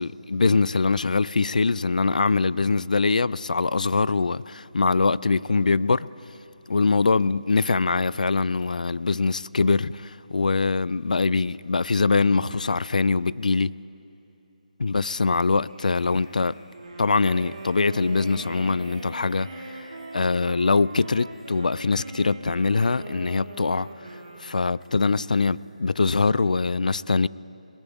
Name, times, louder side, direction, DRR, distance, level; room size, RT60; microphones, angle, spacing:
voice 1, 0.0-6.1 6.7-13.7 14.8-16.6 17.0-19.7 20.1-23.9 24.4-27.3, left 4 dB, 75° left, 0.4 m, -23 dB
sound 1, 15.7-25.8 26.1-26.3, equal, ahead, 3.2 m, -51 dB
Wind instrument woodwind instrument, 16.7-25.0, right 2 dB, 50° right, 2.7 m, -41 dB
21.5 x 17.0 x 3.6 m
hypercardioid pair, 180°, 4 cm